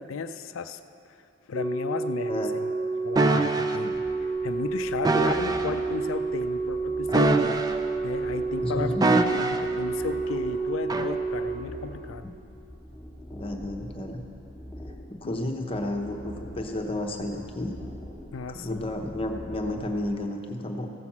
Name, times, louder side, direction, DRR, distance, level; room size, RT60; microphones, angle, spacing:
voice 1, 0.0-2.7 3.0-3.9 4.4-7.6 8.0-12.3 15.2-15.5 18.3-18.9, left 5 dB, 75° left, 10 dB, 0.4 m, -35 dB
Organ, 1.5-12.4 13.5-13.7, right 4 dB, 50° right, 1.0 m, -30 dB
sound 1, 3.2-3.8 5.0-5.7 7.1-8.0 9.0-9.8 10.9-11.1, right 2 dB, 20° right, 0.4 m, -24 dB
(GF) Grounding wire resonating in the wind dramatic, 3.9-20.2, equal, ahead, 1.2 m, -44 dB
voice 2, 8.6-9.3 13.3-14.3 15.1-17.8 18.5-20.9, left 1 dB, 25° left, 3 dB, 0.9 m, -32 dB
15.0 x 5.9 x 7.3 m, 2.8 s
head